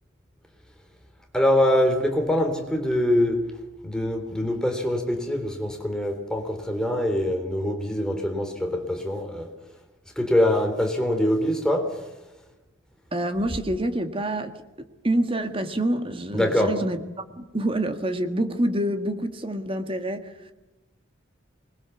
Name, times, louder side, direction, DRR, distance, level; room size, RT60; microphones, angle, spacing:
voice 1, 1.3-3.5 3.8-9.5 10.2-12.0 16.3-16.8, left 1 dB, 5° left, 3 dB, 3.4 m, -24 dB
voice 2, 13.1-14.5 15.0-17.0 17.4-20.5, right 1 dB, 30° right, 7 dB, 1.7 m, -27 dB
25.0 x 21.5 x 7.1 m, 1.0 s
head